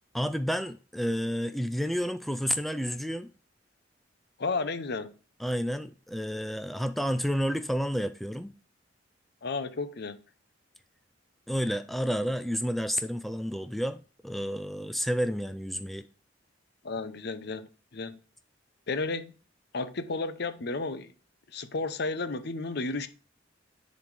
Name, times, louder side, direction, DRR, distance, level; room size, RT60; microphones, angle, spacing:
voice 1, 0.1-3.3 5.4-8.5 11.5-16.1, equal, ahead, 0.3 m, -30 dB
voice 2, 4.4-5.1 9.4-10.2 16.8-18.2 18.9-19.3 19.7-21.1 21.5-23.1, left 3 dB, 60° left, 0.7 m, -33 dB
10.0 x 4.2 x 3.3 m
head